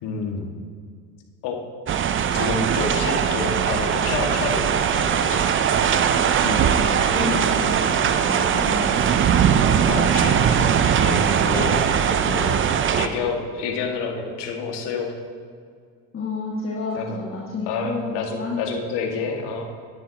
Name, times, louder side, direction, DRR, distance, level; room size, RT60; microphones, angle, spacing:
voice 1, 0.0-0.5 1.4-1.6 2.3-5.5 9.9-11.8 12.0-12.7 13.0-15.1 16.9-17.1 17.7-19.6, left 5 dB, 55° left, 2 dB, 2.0 m, -28 dB
sound 1, 1.9-13.1, right 8 dB, 25° right, 0.6 m, -20 dB
voice 2, 6.4-7.8 8.2-9.3 16.1-18.6, left 3 dB, 25° left, -4 dB, 1.8 m, -30 dB
18.0 x 9.9 x 2.9 m, 2.1 s
hypercardioid pair, 70°, 49 cm